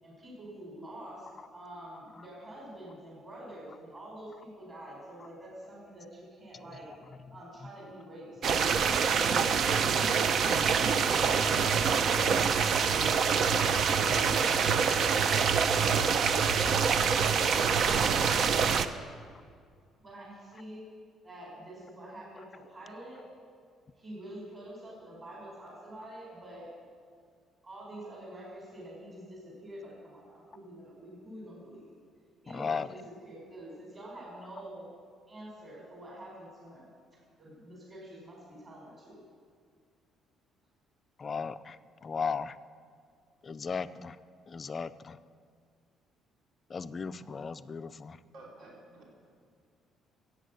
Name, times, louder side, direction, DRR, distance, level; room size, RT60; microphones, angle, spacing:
voice 1, 0.0-6.9 7.3-9.1 20.0-20.9 21.2-23.2 23.9-26.7 27.6-31.9 32.4-34.9 35.3-36.9 37.4-39.2, right 1 dB, 25° right, -4 dB, 4.2 m, -47 dB
sound 1, 8.4-18.9, right 6 dB, 50° right, 0.6 m, -25 dB
voice 2, 32.5-32.9 41.2-41.8 42.0-42.5 43.4-44.1 44.5-45.2 46.7-48.2, left 5 dB, 30° left, 13 dB, 0.4 m, -35 dB
voice 3, 48.3-49.4, right 2 dB, 65° right, -3 dB, 3.2 m, -52 dB
14.0 x 8.4 x 8.2 m, 2.1 s
cardioid pair, 155°, 0 cm